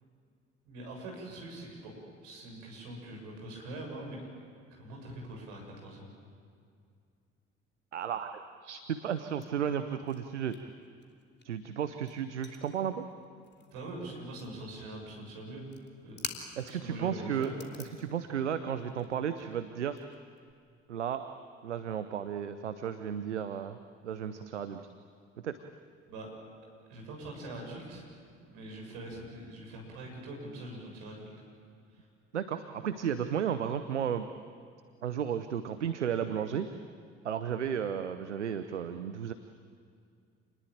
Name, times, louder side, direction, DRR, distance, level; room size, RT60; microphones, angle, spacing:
voice 1, 0.7-1.9 2.2-4.2 4.7-6.0 13.6-15.7 16.0-16.3 16.7-17.5 26.1-26.3 26.9-28.0 28.5-31.4, right 1 dB, 65° right, 0 dB, 7.2 m, -43 dB
voice 2, 7.9-10.6 11.4-13.0 16.6-17.5 17.8-20.0 20.9-21.3 21.6-23.8 24.0-24.8 25.4-25.6 32.3-34.3 35.0-36.7 37.2-39.3, right 8 dB, 80° right, 10 dB, 0.8 m, -33 dB
sound 1, 9.1-10.2 10.5-14.0 14.2-14.7 15.6-16.9 17.2-20.5, left 4 dB, 30° left, 3.1 m, -47 dB
28.5 x 20.5 x 8.9 m, 2.3 s
figure-of-eight pair, 50°, 35 cm